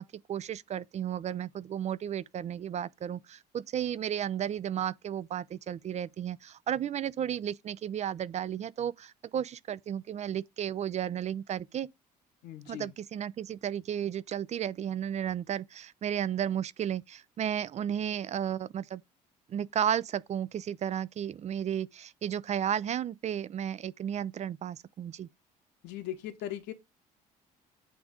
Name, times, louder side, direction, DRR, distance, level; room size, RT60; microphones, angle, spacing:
voice 1, 0.0-11.9 12.7-19.0 19.5-25.3, right 9 dB, 35° right, 0.5 m, -33 dB
voice 2, 12.4-12.9 25.8-26.7, left 12 dB, 55° left, 1.1 m, -39 dB
8.6 x 3.4 x 5.0 m
figure-of-eight pair, 50°, 21 cm